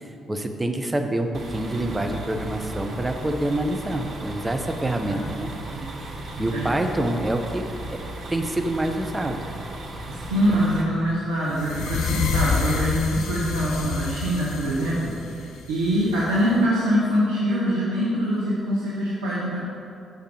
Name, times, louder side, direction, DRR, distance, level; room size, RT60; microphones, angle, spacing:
voice 1, 0.3-5.5 6.4-8.0 8.3-9.5, right 1 dB, 20° right, 5 dB, 0.7 m, -26 dB
sound 1, 1.3-10.8, right 1 dB, 50° right, 1.0 m, -36 dB
voice 2, 10.1-19.6, equal, 75° right, -9 dB, 0.9 m, -24 dB
sound 2, 11.5-16.5, left 5 dB, 60° left, 0.4 m, -28 dB
6.6 x 5.1 x 4.6 m, 2.6 s
figure-of-eight pair, 40°, 0 cm